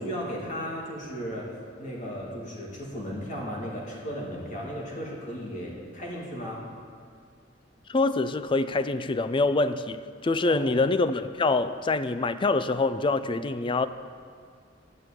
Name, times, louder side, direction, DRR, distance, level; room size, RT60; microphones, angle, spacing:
voice 1, 0.0-1.5 1.8-6.6 10.4-10.7, equal, 40° left, 2.5 m, -35 dB
voice 2, 7.9-13.9, left 3 dB, 25° left, 0.4 m, -25 dB
11.5 x 6.2 x 9.0 m
head